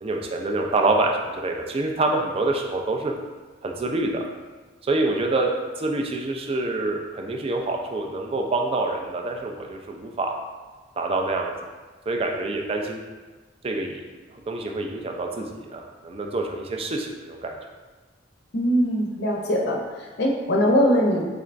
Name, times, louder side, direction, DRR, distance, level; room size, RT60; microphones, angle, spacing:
voice 1, 0.0-3.1 3.6-4.2 4.8-10.3 11.0-11.5 12.1-13.0 13.6-14.0 14.5-17.6, right 2 dB, 30° right, 2 dB, 0.3 m, -26 dB
voice 2, 18.5-21.2, equal, 60° left, -1 dB, 0.6 m, -22 dB
3.9 x 3.3 x 2.5 m, 1.3 s
head